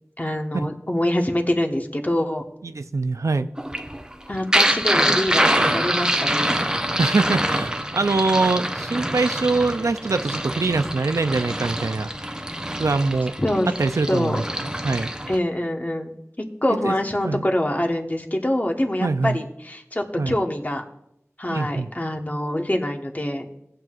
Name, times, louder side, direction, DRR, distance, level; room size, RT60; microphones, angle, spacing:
voice 1, 0.2-2.4 4.3-6.5 13.4-13.7 14.1-14.4 15.3-16.1 16.6-20.8 21.4-23.5, left 1 dB, 30° left, 2 dB, 1.2 m, -25 dB
voice 2, 2.6-3.5 7.0-12.1 12.8-13.3 13.8-15.1 16.8-16.9 17.2-17.5 19.0-19.4 20.2-20.4 21.5-21.9, right 3 dB, 90° right, 10 dB, 0.4 m, -23 dB
sound 1, 3.6-15.4, right 1 dB, 15° right, 0.7 m, -25 dB
17.5 x 7.6 x 2.4 m, 0.79 s
wide cardioid pair, 50°, 5 cm